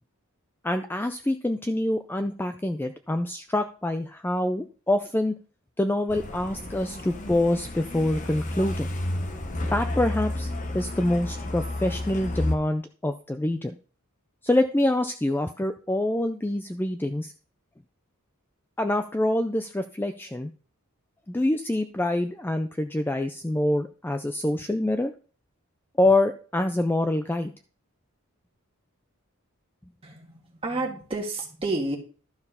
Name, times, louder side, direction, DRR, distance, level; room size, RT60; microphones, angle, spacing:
voice 1, 0.6-5.3 5.8-8.9 9.7-10.5 10.7-13.7 14.4-17.3 18.8-20.5 21.3-25.1 26.0-27.5, left 1 dB, 10° left, 7 dB, 0.3 m, -26 dB
Truck, 6.1-12.6, left 1 dB, 35° left, 0.9 m, -31 dB
voice 2, 30.0-32.0, right 2 dB, 25° right, 1 dB, 1.6 m, -30 dB
12.0 x 4.4 x 5.5 m, 0.40 s
head